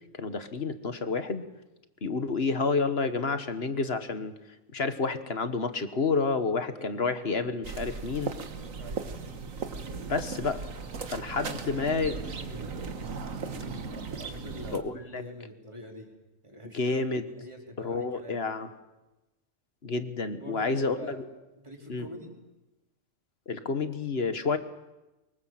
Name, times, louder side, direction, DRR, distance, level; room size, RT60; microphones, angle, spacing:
voice 1, 0.2-1.4 2.0-4.3 4.7-8.3 10.1-10.6 11.1-12.1 14.7-15.2 16.7-17.3 17.8-18.7 19.8-21.2 21.9-22.1 23.5-24.6, left 4 dB, 50° left, 10 dB, 1.7 m, -29 dB
voice 2, 6.7-7.2 8.8-9.2 11.4-12.8 13.2-16.1 16.4-17.0 17.3-18.5 20.4-21.2 21.6-22.3, equal, 20° right, 0 dB, 4.3 m, -45 dB
sound 1, 7.6-14.8, right 4 dB, 90° right, 1.9 m, -37 dB
24.0 x 22.5 x 7.8 m, 1.0 s
omnidirectional pair, 1.4 m